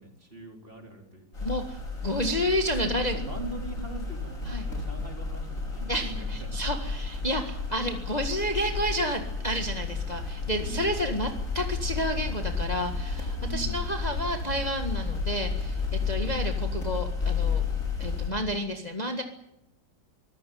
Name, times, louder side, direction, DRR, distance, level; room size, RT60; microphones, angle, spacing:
voice 1, 0.0-1.5 2.0-2.3 2.8-6.6 10.6-11.2 13.4-13.8, right 2 dB, 30° right, 3 dB, 4.4 m, -41 dB
sound 1, 1.3-18.3, left 4 dB, 40° left, 6.1 m, -32 dB
voice 2, 1.4-3.1 4.5-4.7 5.9-17.6 18.0-19.2, equal, 20° left, 5 dB, 1.8 m, -30 dB
24.5 x 15.0 x 9.5 m, 0.84 s
omnidirectional pair, 2.1 m